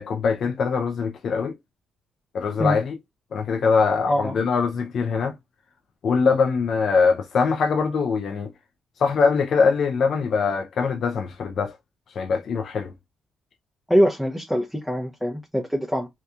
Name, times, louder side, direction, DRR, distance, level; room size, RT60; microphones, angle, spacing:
voice 1, 0.0-1.5 2.3-2.9 3.3-5.3 6.0-8.5 9.0-11.7 12.2-12.9, left 5 dB, 60° left, 0.4 m, -22 dB
voice 2, 13.9-16.1, equal, ahead, 0.5 m, -23 dB
2.8 x 2.2 x 2.3 m
cardioid pair, 90°, 0 cm